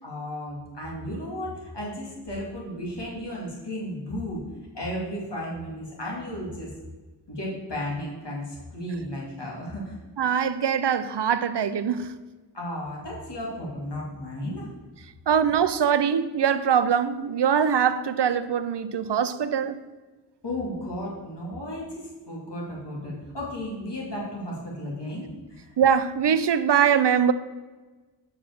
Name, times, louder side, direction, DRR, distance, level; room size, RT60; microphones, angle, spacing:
voice 1, 0.0-4.4 4.7-6.7 7.3-10.0 12.5-14.7 20.4-25.7, left 1 dB, 75° left, 2.4 m, -34 dB
voice 2, 10.2-12.1 15.3-19.8 25.8-27.3, right 8 dB, 75° right, 0.5 m, -22 dB
6.2 x 4.9 x 6.6 m
wide cardioid pair, 55°, 42 cm